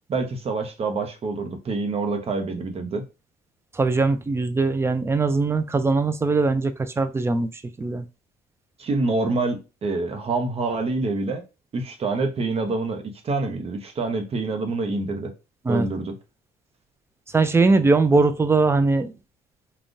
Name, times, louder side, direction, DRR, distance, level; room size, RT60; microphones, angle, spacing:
voice 1, 0.1-3.0 8.8-11.4 11.7-15.3 15.7-16.1, right 3 dB, 35° right, 0.7 m, -26 dB
voice 2, 3.7-8.0 15.6-15.9 17.3-19.1, right 3 dB, 15° right, 0.3 m, -21 dB
3.6 x 2.3 x 2.5 m
cardioid pair, 110°, 17 cm